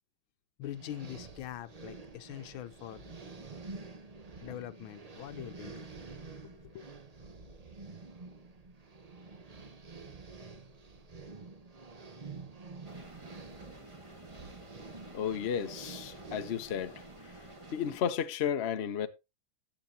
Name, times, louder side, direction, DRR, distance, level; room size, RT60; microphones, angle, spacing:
voice 1, 0.6-3.5 4.4-5.8 6.4-6.9, left 12 dB, 75° left, 1.5 m, -44 dB
sound 1, 0.6-17.6, right 4 dB, 45° right, 0.5 m, -49 dB
sound 2, 12.8-18.0, right 2 dB, 15° right, 1.5 m, -50 dB
voice 2, 15.1-17.0 17.7-19.1, left 8 dB, 55° left, 0.7 m, -33 dB
16.5 x 7.7 x 2.8 m
omnidirectional pair, 2.3 m